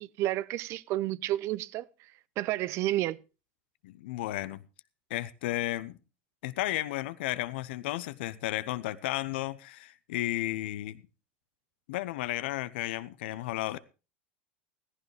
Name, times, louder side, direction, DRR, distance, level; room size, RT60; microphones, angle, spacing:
voice 1, 0.0-1.9 2.4-3.2, right 15 dB, 50° right, 0.6 m, -30 dB
voice 2, 3.8-4.6 5.1-6.0 6.4-11.0 11.9-13.8, left 16 dB, 70° left, 0.8 m, -33 dB
15.0 x 14.5 x 3.3 m
hypercardioid pair, 90°, 6 cm